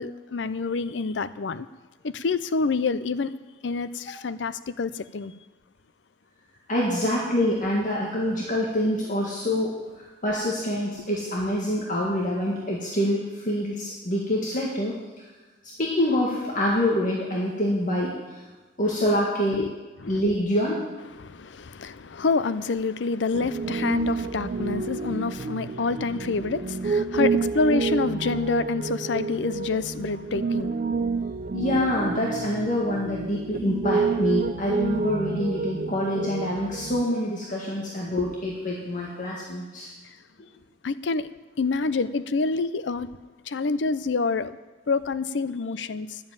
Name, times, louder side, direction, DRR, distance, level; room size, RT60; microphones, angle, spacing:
voice 1, 0.0-1.7 2.0-3.3 3.6-5.3 19.5-19.7 20.0-20.2 21.2-30.8 40.8-41.3 41.6-43.1 43.5-44.6 44.9-46.2, left 4 dB, 80° left, 14 dB, 0.5 m, -27 dB
voice 2, 6.7-14.9 15.8-18.4 18.8-19.7 20.1-20.8 31.5-39.9, left 1 dB, 45° left, -4 dB, 1.9 m, -26 dB
Piano, 23.3-37.0, right 4 dB, 45° right, 0.4 m, -29 dB
11.0 x 7.3 x 8.9 m, 1.2 s
head